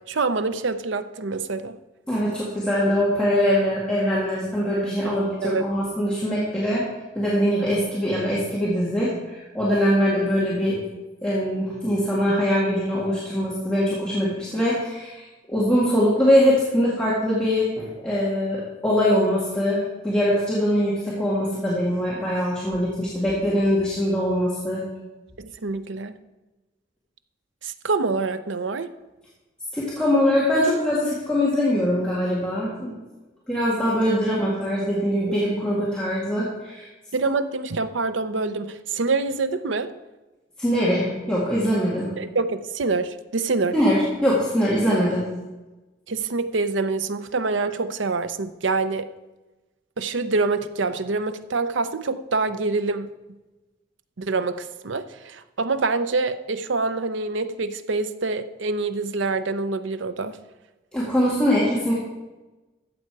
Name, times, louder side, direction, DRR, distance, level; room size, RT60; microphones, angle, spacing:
voice 1, 0.1-1.8 5.0-5.2 5.4-5.6 25.4-26.2 27.6-28.9 35.3-35.4 37.1-39.9 42.2-43.7 46.1-49.1 50.0-53.1 54.2-60.4, right 3 dB, 80° right, 11 dB, 0.7 m, -26 dB
voice 2, 2.1-6.9 7.2-10.8 11.2-24.8 29.7-32.9 33.5-36.9 40.6-42.1 43.7-45.3 60.9-61.9, equal, 5° left, -8 dB, 2.1 m, -22 dB
14.0 x 7.9 x 4.7 m, 1.1 s
head